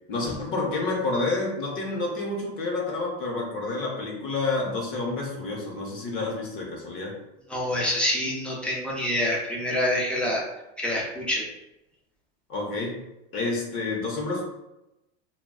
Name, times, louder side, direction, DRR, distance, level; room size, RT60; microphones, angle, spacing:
voice 1, 0.1-7.2 12.5-13.0 13.3-14.4, left 3 dB, 40° left, -1 dB, 0.6 m, -29 dB
voice 2, 7.5-10.4 10.8-11.4, left 1 dB, 5° left, -4 dB, 0.3 m, -26 dB
2.2 x 2.1 x 3.5 m, 0.93 s
supercardioid pair, 135°, 33 cm